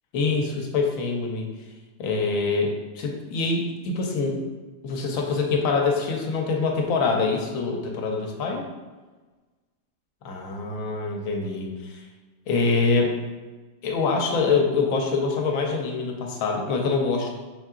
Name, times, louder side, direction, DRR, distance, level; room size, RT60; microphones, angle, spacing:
voice 1, 0.1-1.5 2.0-4.4 4.8-8.6 10.2-12.0 12.5-13.2 13.8-17.3, left 4 dB, 85° left, 1 dB, 1.1 m, -25 dB
3.9 x 3.6 x 2.4 m, 1.3 s
omnidirectional pair, 1.4 m